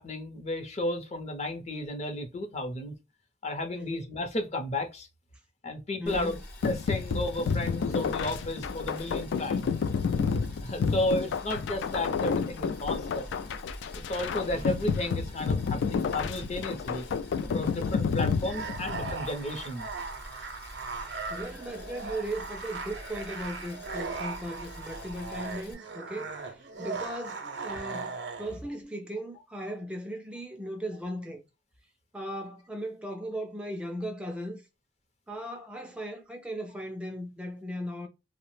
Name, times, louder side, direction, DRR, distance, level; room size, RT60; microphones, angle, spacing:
voice 1, 0.0-2.9 3.4-5.1 5.6-6.4 6.6-9.7 10.6-13.3 13.9-17.1 17.5-19.9, left 1 dB, 40° left, 0.6 m, -33 dB
voice 2, 6.0-6.4 20.9-31.4 32.1-34.7 35.3-38.1, equal, 5° right, 0.3 m, -37 dB
Boiling, 6.1-25.7, left 1 dB, 65° left, 0.9 m, -46 dB
sound 1, 6.6-19.2, left 5 dB, 80° left, 0.3 m, -30 dB
sound 2, 18.4-28.6, right 4 dB, 65° right, 0.6 m, -38 dB
2.7 x 2.0 x 3.0 m
head